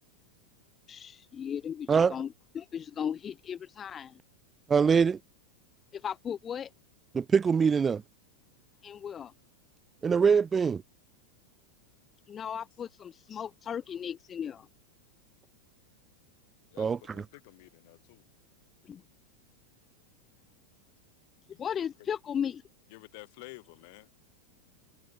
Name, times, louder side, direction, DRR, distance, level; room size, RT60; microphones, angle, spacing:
voice 1, 0.9-4.2 5.9-6.7 8.8-9.3 12.3-14.7 18.8-19.0 21.6-22.6, left 8 dB, 20° left, 0.9 m, -36 dB
voice 2, 4.7-5.2 7.1-8.0 10.0-10.8 16.8-17.0, right 6 dB, 15° right, 0.4 m, -23 dB
voice 3, 16.7-18.2 21.5-21.6 22.9-24.1, left 25 dB, 50° left, 3.1 m, -51 dB
supercardioid pair, 165°, 0 cm